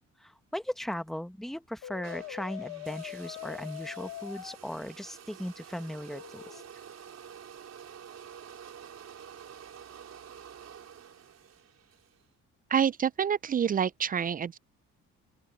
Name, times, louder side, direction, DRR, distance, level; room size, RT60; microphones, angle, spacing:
voice 1, 0.2-6.6, equal, ahead, 1.4 m, -38 dB
Brass instrument, 1.8-4.6 6.1-6.7, left 14 dB, 85° left, 1.4 m, -43 dB
sound 1, 2.0-12.2, right 8 dB, 60° right, 4.6 m, -49 dB
voice 2, 12.7-14.6, right 8 dB, 30° right, 0.4 m, -27 dB
open air
cardioid pair, 90°, 30 cm